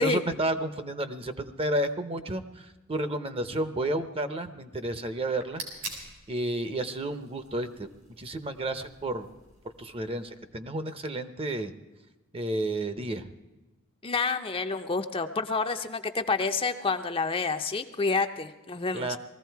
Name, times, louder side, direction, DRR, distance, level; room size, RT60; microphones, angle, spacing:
voice 1, 0.0-5.6 6.3-7.9 8.2-9.3 9.8-11.7 12.3-13.3 18.9-19.2, right 1 dB, 25° right, 10 dB, 0.7 m, -31 dB
sound 1, 5.1-10.3, right 3 dB, 90° right, 5.0 m, -46 dB
voice 2, 14.0-19.1, left 4 dB, 25° left, 7 dB, 0.6 m, -28 dB
19.5 x 15.0 x 4.6 m, 1.1 s
head